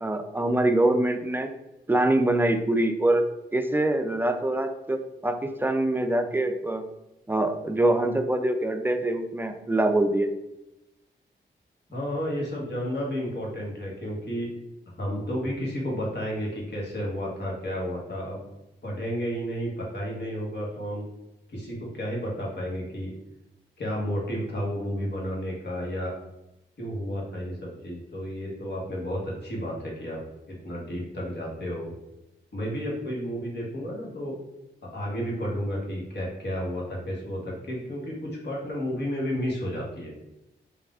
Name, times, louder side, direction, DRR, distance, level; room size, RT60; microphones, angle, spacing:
voice 1, 0.0-1.5 1.9-3.2 3.5-6.8 7.3-10.3, right 1 dB, 10° right, 7 dB, 0.4 m, -24 dB
voice 2, 11.9-14.5 15.0-18.5 18.8-21.0 21.5-23.1 23.8-26.1 26.8-30.2 30.5-31.9 32.5-34.4 34.8-40.1, equal, 60° left, -3 dB, 1.2 m, -32 dB
3.3 x 2.4 x 2.4 m, 0.91 s
supercardioid pair, 40°, 20 cm